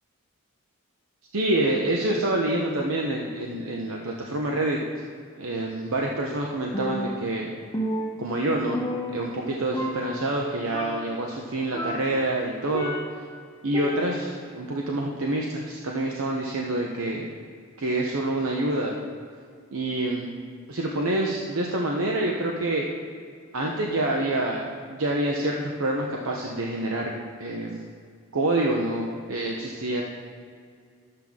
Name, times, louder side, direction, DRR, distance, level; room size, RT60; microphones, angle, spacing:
voice 1, 1.3-5.0 5.4-7.5 8.2-8.8 9.1-13.3 13.6-17.3 17.8-18.9 19.7-20.3 20.7-22.9 23.5-27.1 27.4-27.8 28.3-30.0, right 1 dB, 75° right, -1 dB, 0.9 m, -27 dB
Percussion, 6.7-7.4 7.7-9.5 9.7-10.4 10.7-11.2 11.7-13.3 13.7-14.4, equal, 15° left, 0.6 m, -32 dB
12.0 x 7.7 x 3.6 m, 2.2 s
head